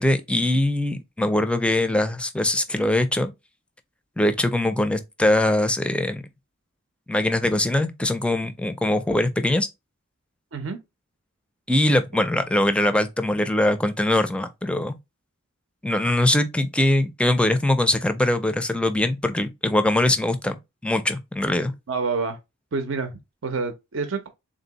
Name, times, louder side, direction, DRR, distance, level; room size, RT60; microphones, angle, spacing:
voice 1, 0.0-3.3 4.2-6.3 7.1-9.7 11.7-15.0 15.8-20.6 20.8-21.7, left 1 dB, 5° left, 0.4 m, -22 dB
voice 2, 21.9-22.4 22.7-24.3, right 4 dB, 75° right, 0.6 m, -28 dB
3.7 x 2.6 x 3.9 m
head